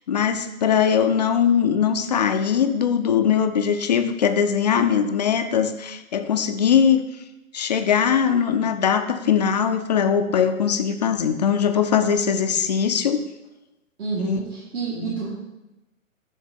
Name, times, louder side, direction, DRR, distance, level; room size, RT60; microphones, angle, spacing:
voice 1, 0.1-7.0 7.5-13.2 14.2-14.4 14.9-15.2, left 7 dB, 35° left, 7 dB, 0.4 m, -21 dB
voice 2, 14.0-15.3, right 4 dB, 50° right, -9 dB, 2.9 m, -28 dB
10.5 x 3.9 x 4.2 m, 0.99 s
hypercardioid pair, 145°, 41 cm